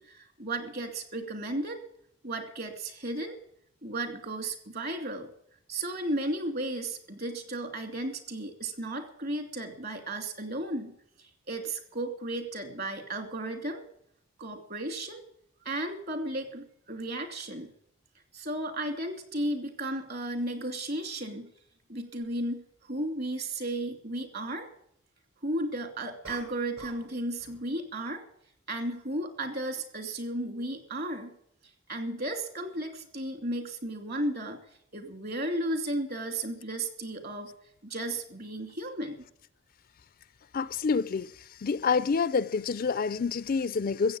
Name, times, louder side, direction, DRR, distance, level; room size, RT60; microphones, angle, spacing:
voice 1, 0.0-1.8 2.2-3.4 3.8-5.3 5.7-10.9 11.2-13.8 14.4-15.2 15.6-17.7 18.3-21.5 21.9-24.7 25.4-28.2 28.7-31.3 31.9-34.6 34.9-37.5 37.8-39.2, right 1 dB, 50° right, 2.7 m, -34 dB
sound 1, 22.3-22.4 26.2-27.1 27.4-27.7, right 4 dB, 70° right, 6.2 m, -46 dB
voice 2, 40.5-44.2, left 5 dB, 45° left, 0.4 m, -28 dB
15.0 x 8.0 x 8.6 m
head